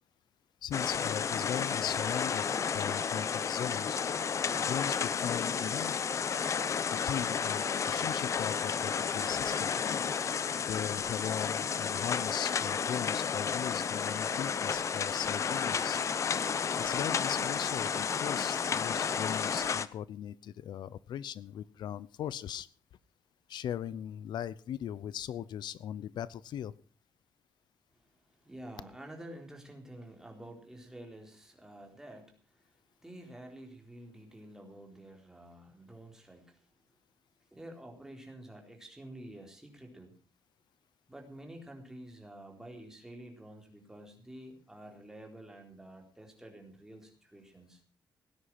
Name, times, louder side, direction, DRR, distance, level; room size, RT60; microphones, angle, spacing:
voice 1, 0.6-4.0 4.6-6.0 6.6-9.7 10.6-16.0 16.8-22.7 23.5-26.7, left 10 dB, 85° left, 19 dB, 0.7 m, -39 dB
sound 1, 0.7-19.9, left 6 dB, 45° left, 0.8 m, -32 dB
voice 2, 27.9-36.7 37.5-40.2 41.1-47.8, right 1 dB, 5° right, 2 dB, 4.0 m, -49 dB
18.0 x 10.0 x 5.7 m, 0.39 s
wide cardioid pair, 155°, 7 cm